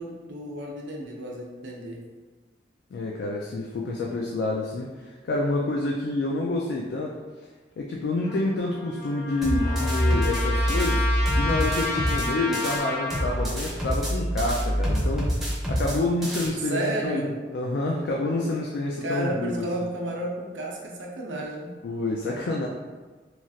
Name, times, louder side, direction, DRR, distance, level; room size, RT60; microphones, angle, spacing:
voice 1, 0.0-2.0 16.7-17.3 19.0-21.7, right 1 dB, 90° right, -1 dB, 0.6 m, -32 dB
voice 2, 2.9-7.2 7.8-11.0 11.3-15.3 15.7-19.9 21.8-22.7, left 2 dB, 70° left, -1 dB, 0.3 m, -28 dB
Trumpet, 8.2-13.4, left 2 dB, 40° left, 0.7 m, -31 dB
sound 1, 9.4-12.8 13.1-16.5, equal, ahead, 0.5 m, -26 dB
3.1 x 2.3 x 2.6 m, 1.4 s
head